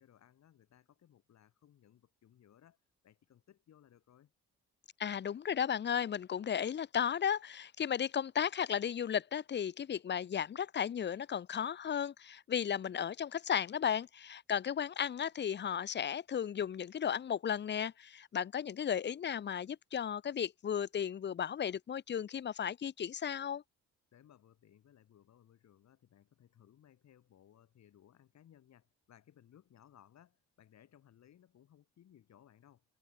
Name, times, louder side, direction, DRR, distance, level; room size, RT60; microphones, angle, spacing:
voice 1, 0.0-2.8 3.0-4.3 24.1-32.8, left 10 dB, 65° left, 3.0 m, -63 dB
voice 2, 5.0-23.6, left 8 dB, 35° left, 0.6 m, -35 dB
cardioid pair, 90°, 30 cm